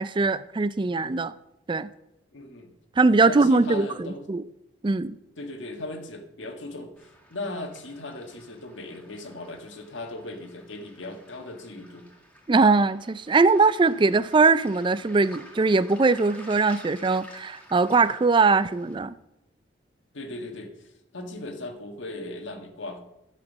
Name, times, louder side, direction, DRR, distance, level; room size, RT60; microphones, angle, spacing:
voice 1, 0.0-1.3 1.7-1.9 3.0-4.4 4.8-5.2 12.5-19.1, right 3 dB, 25° right, 15 dB, 0.4 m, -21 dB
voice 2, 2.3-2.7 3.2-4.3 5.4-12.1 20.1-23.0, left 2 dB, 80° left, 5 dB, 1.6 m, -38 dB
Waves surf, 7.0-19.0, equal, 5° left, 1.9 m, -51 dB
11.5 x 6.1 x 7.3 m, 0.88 s
head